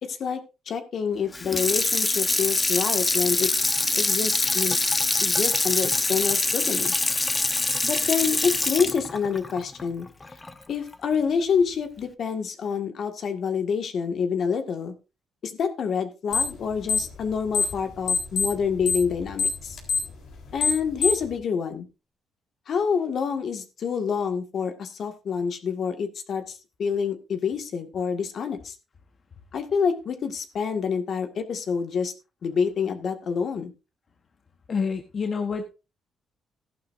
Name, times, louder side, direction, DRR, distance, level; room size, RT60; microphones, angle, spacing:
voice 1, 0.0-3.5 3.9-4.8 5.2-6.9 7.8-10.1 10.7-14.9 15.4-19.8 20.5-21.9 22.7-28.8 29.5-32.1 32.4-33.7, left 6 dB, 60° left, 6 dB, 1.9 m, -27 dB
Water tap faucet / Sink (filling or washing), 1.3-10.5 10.9-11.0, left 2 dB, 20° left, 1.0 m, -24 dB
sound 1, 16.3-16.6 16.8-17.8 18.1-21.3, left 5 dB, 75° left, 3.9 m, -24 dB
voice 2, 34.7-35.7, left 5 dB, 45° left, 6 dB, 1.2 m, -27 dB
14.5 x 11.0 x 2.6 m, 0.29 s
cardioid pair, 90°, 0 cm